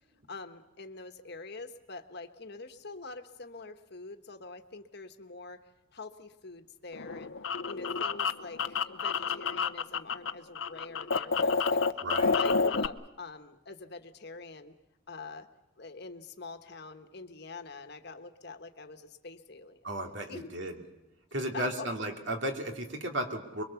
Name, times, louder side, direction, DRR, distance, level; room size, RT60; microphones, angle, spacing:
voice 1, 0.3-5.6 5.9-7.3 7.6-11.8 12.3-14.7 15.1-15.5 15.8-19.8 20.3-20.5 21.5-21.9, left 3 dB, 55° left, 7 dB, 1.4 m, -45 dB
sound 1, 6.9-10.3 10.6-12.9, left 4 dB, 70° left, 0.8 m, -29 dB
voice 2, 12.0-12.3 19.8-20.8 21.3-23.6, right 1 dB, 60° right, 3 dB, 2.6 m, -34 dB
24.5 x 23.0 x 7.1 m, 0.97 s
head